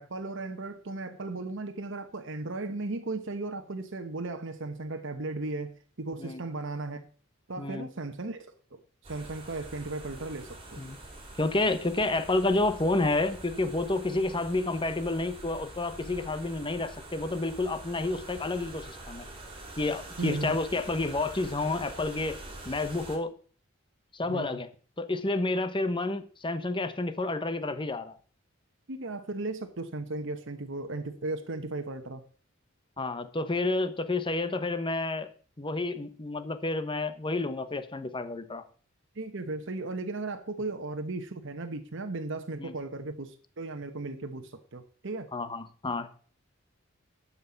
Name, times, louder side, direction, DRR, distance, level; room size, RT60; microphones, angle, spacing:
voice 1, 0.0-7.0 7.5-10.8 20.2-20.5 24.2-24.6 28.9-32.2 39.1-45.3, right 2 dB, 65° right, 1.1 m, -36 dB
voice 2, 7.6-7.9 10.8-11.0 11.4-19.3 19.8-22.4 22.7-23.3 24.1-24.7 25.0-28.2 33.0-35.3 35.6-38.6 42.6-42.7 45.3-46.1, left 2 dB, 25° left, 1.0 m, -30 dB
sound 1, 9.0-23.2, right 2 dB, 25° right, 2.7 m, -45 dB
12.0 x 5.7 x 7.1 m
head